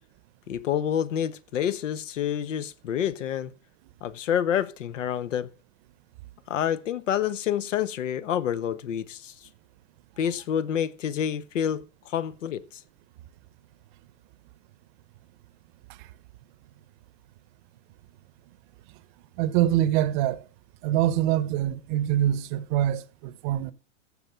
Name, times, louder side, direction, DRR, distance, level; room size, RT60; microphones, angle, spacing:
voice 1, 0.5-3.5 4.0-5.5 6.5-9.3 10.2-12.8, left 9 dB, 80° left, 1.2 m, -28 dB
voice 2, 19.4-20.4 20.8-23.7, right 12 dB, 40° right, 0.8 m, -24 dB
14.5 x 6.7 x 5.7 m
hypercardioid pair, 145°, 37 cm